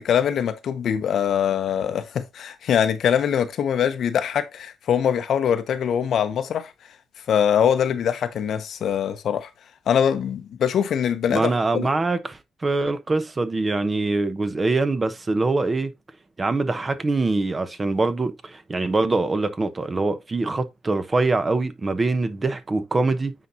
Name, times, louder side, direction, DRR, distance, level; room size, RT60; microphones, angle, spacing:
voice 1, 0.0-6.9 7.3-9.5 9.9-11.9, left 8 dB, 65° left, 0.8 m, -23 dB
voice 2, 11.3-15.9 16.4-23.3, right 3 dB, 25° right, 0.9 m, -24 dB
9.2 x 4.2 x 2.8 m
cardioid pair, 90°, 0 cm